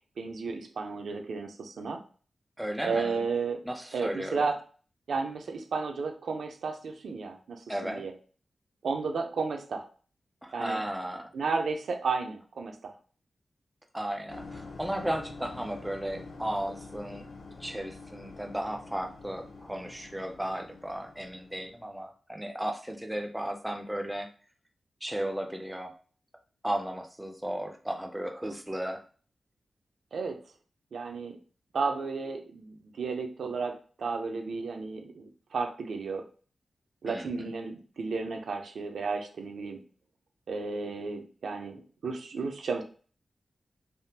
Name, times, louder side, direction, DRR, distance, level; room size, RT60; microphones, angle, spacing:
voice 1, 0.2-2.0 2.8-3.6 3.9-4.6 5.1-8.1 8.8-9.8 10.5-10.8 11.3-12.9 30.1-30.4 30.9-31.4 31.7-36.2 37.0-39.8 40.5-42.8, right 4 dB, 75° right, 4 dB, 0.5 m, -33 dB
voice 2, 2.6-3.2 3.6-4.5 7.7-8.0 10.4-11.3 13.9-17.3 17.6-24.3 25.0-25.9 26.6-29.0 37.0-37.5, right 1 dB, 5° right, 4 dB, 0.3 m, -35 dB
sound 1, 14.3-21.9, left 3 dB, 60° left, 0.4 m, -46 dB
3.4 x 2.1 x 2.8 m, 0.40 s
wide cardioid pair, 175°, 0 cm